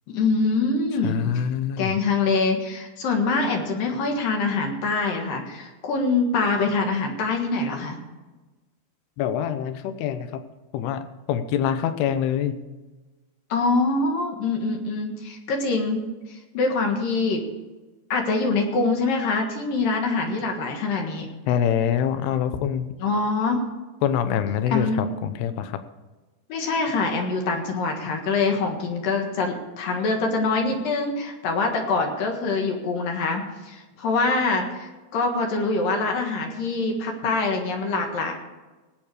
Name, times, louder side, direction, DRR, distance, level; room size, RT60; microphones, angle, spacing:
voice 1, 0.1-1.4 1.8-8.0 13.5-16.0 16.3-17.4 18.1-21.3 23.0-23.6 24.7-25.0 26.5-38.3, left 3 dB, 65° left, 3 dB, 3.1 m, -24 dB
voice 2, 1.0-2.0 9.2-10.4 10.7-12.6 21.5-22.9 24.0-25.8, left 9 dB, 85° left, 10 dB, 2.8 m, -25 dB
18.5 x 8.9 x 4.9 m, 1.2 s
omnidirectional pair, 4.6 m